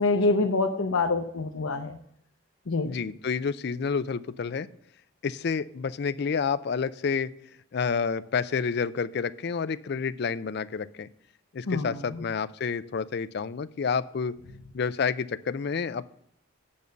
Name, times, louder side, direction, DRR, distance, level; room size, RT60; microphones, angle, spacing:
voice 1, 0.0-2.0 2.7-2.9 11.7-12.2, left 3 dB, 80° left, 3 dB, 0.7 m, -26 dB
voice 2, 2.8-4.7 5.2-7.3 7.7-11.1 11.5-14.3 14.7-16.1, left 5 dB, 50° left, 14 dB, 0.4 m, -29 dB
8.6 x 5.3 x 6.9 m, 0.69 s
head